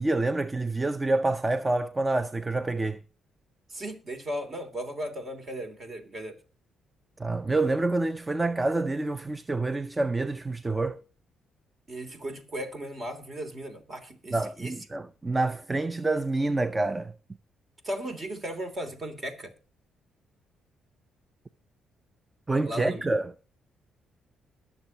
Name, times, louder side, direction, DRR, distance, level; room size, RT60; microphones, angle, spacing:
voice 1, 0.0-3.0 7.2-11.0 14.3-17.1 22.5-23.5, right 2 dB, 20° right, 0.5 m, -27 dB
voice 2, 3.7-6.4 11.9-14.7 17.8-19.5 22.6-23.1, right 1 dB, 35° right, 3.1 m, -36 dB
21.5 x 7.2 x 2.9 m
cardioid pair, 90°, 0 cm